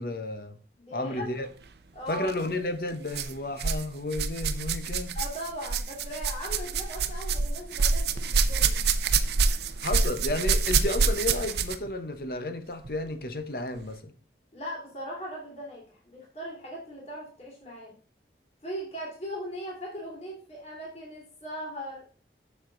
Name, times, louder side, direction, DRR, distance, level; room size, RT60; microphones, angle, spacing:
voice 1, 0.0-0.6 0.9-1.5 2.1-5.2 9.8-14.1, left 2 dB, 55° left, 0.9 m, -32 dB
voice 2, 0.8-1.3 1.9-2.3 5.1-8.8 14.5-17.9 18.6-22.1, equal, 35° left, 2.7 m, -39 dB
sound 1, 2.2-2.3 3.1-3.8 4.1-11.9 12.8-12.9 13.7-13.8, right 5 dB, 70° right, 0.6 m, -26 dB
7.2 x 6.7 x 3.9 m
head